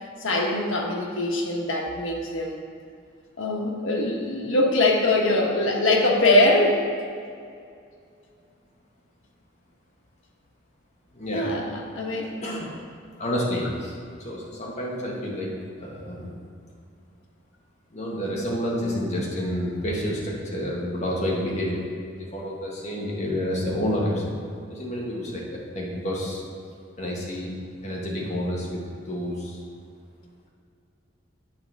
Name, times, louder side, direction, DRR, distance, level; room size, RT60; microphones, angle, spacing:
voice 1, 0.2-2.6 3.4-6.8 11.3-12.3, left 2 dB, 90° left, 0 dB, 1.2 m, -22 dB
voice 2, 11.1-11.5 12.4-12.7 13.2-13.9 14.2-15.5 15.8-16.3 17.9-21.8 22.2-24.3 24.7-25.4 25.7-26.4 27.0-27.5 27.8-29.6, equal, 35° left, -4 dB, 1.6 m, -29 dB
8.8 x 7.7 x 3.5 m, 2.4 s
head